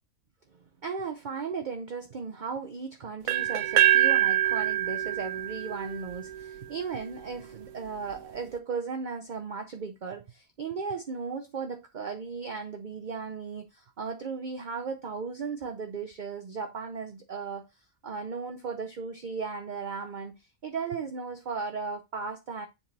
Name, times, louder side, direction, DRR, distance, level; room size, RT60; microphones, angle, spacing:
voice 1, 0.8-17.7 18.0-22.7, right 5 dB, 45° right, 0.7 m, -36 dB
sound 1, 3.3-7.2, right 11 dB, 85° right, 1.1 m, -25 dB
7.4 x 4.0 x 4.1 m
omnidirectional pair, 1.4 m